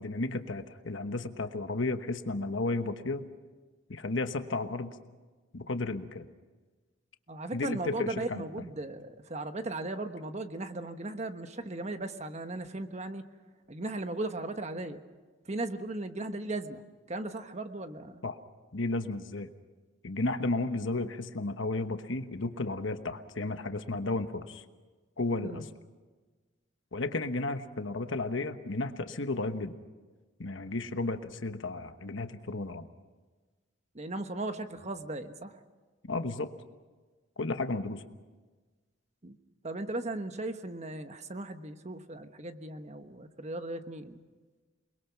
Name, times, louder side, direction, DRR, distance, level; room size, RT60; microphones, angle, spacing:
voice 1, 0.0-3.3 3.9-5.0 5.5-6.3 7.5-8.4 18.2-18.4 18.7-19.5 20.0-24.6 25.2-25.7 26.9-29.8 30.4-32.9 36.1-36.5 37.4-38.0, left 2 dB, 70° left, 8 dB, 1.2 m, -33 dB
voice 2, 7.3-13.3 13.7-15.0 15.4-16.8 17.1-18.2 25.4-25.6 33.9-35.6 39.2-39.4 39.6-44.2, right 2 dB, 35° right, 8 dB, 1.2 m, -37 dB
29.0 x 21.5 x 5.9 m, 1.3 s
head